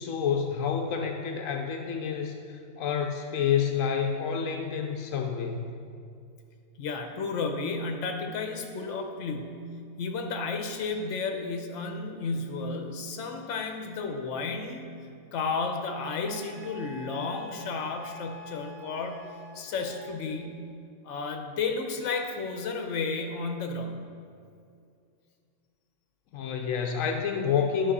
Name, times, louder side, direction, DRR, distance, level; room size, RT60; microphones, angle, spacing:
voice 1, 0.0-5.7 26.3-27.9, left 7 dB, 85° left, 3 dB, 1.1 m, -29 dB
voice 2, 6.8-14.9 15.3-19.3 19.5-20.6 21.0-24.0, left 4 dB, 65° left, 4 dB, 1.1 m, -32 dB
Wind instrument woodwind instrument, 16.2-20.1, left 3 dB, 75° right, 1.2 m, -46 dB
11.5 x 5.7 x 4.2 m, 2.3 s
omnidirectional pair, 1.4 m